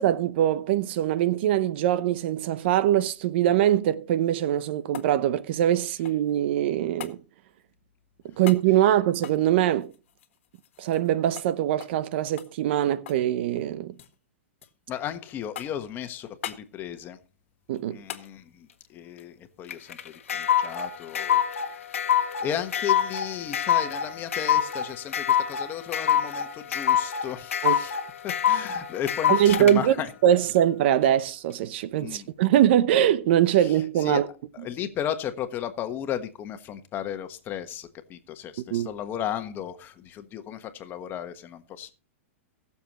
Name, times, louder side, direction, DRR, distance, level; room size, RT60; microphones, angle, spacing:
voice 1, 0.0-7.2 8.2-9.9 10.8-14.0 17.7-18.0 27.6-27.8 29.3-29.9 30.2-34.2 38.7-38.9, right 11 dB, 55° right, 0.7 m, -22 dB
sound 1, 4.3-6.4 7.0-7.2 8.4-8.7 9.1-11.1 11.4-11.5 11.8-12.0 12.4-13.3 13.5-14.2 14.6-15.1 15.5-15.9 16.4-16.7 18.1-18.3 20.7-20.8, left 11 dB, 70° left, 1.6 m, -41 dB
voice 2, 14.9-17.2 17.9-21.4 21.7-21.8 22.4-30.1 32.0-32.3 33.6-34.2 34.5-41.9, left 10 dB, 30° left, 1.3 m, -35 dB
sound 2, 19.7-29.7, left 9 dB, 90° left, 1.4 m, -25 dB
21.0 x 7.1 x 3.0 m
hypercardioid pair, 135°, 7 cm